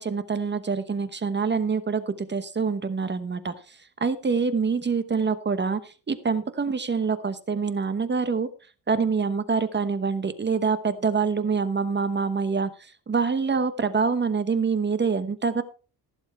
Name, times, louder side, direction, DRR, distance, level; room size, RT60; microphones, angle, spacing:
voice 1, 0.0-8.5 8.9-15.6, right 5 dB, 25° right, 12 dB, 1.0 m, -26 dB
15.5 x 7.3 x 4.4 m, 0.36 s
cardioid pair, 120°, 41 cm